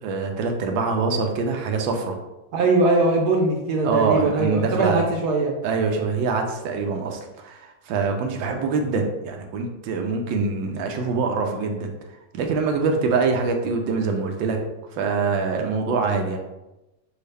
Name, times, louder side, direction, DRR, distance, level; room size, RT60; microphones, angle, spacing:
voice 1, 0.0-2.2 3.8-5.1 5.6-11.9 12.3-14.6 14.9-16.4, right 4 dB, 85° right, 3 dB, 1.4 m, -24 dB
voice 2, 2.5-5.5, right 2 dB, 65° right, 1 dB, 1.1 m, -21 dB
6.4 x 2.4 x 3.3 m, 0.97 s
omnidirectional pair, 2.0 m